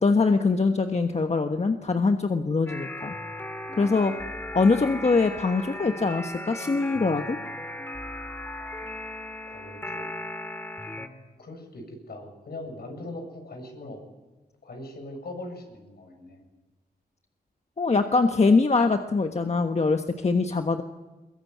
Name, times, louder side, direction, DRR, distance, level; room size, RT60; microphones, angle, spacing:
voice 1, 0.0-3.1 3.7-4.1 4.5-7.4 17.8-20.8, left 4 dB, 40° left, 5 dB, 1.3 m, -23 dB
sound 1, 2.7-11.1, left 1 dB, 15° left, 2.8 m, -37 dB
voice 2, 9.5-10.1 10.9-14.0 14.6-16.4, left 1 dB, 70° left, 4 dB, 7.7 m, -41 dB
23.0 x 22.0 x 9.7 m, 1.2 s
wide cardioid pair, 80°, 17 cm